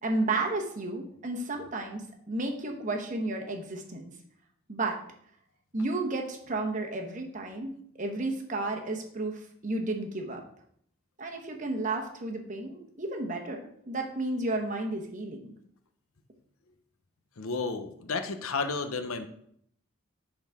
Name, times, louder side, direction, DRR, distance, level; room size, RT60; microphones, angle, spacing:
voice 1, 0.0-4.1 4.7-5.0 5.7-10.4 11.2-15.5, right 2 dB, 35° right, 2 dB, 1.0 m, -32 dB
voice 2, 17.4-19.3, left 4 dB, 85° left, 8 dB, 0.7 m, -32 dB
10.5 x 3.9 x 3.5 m, 0.68 s
head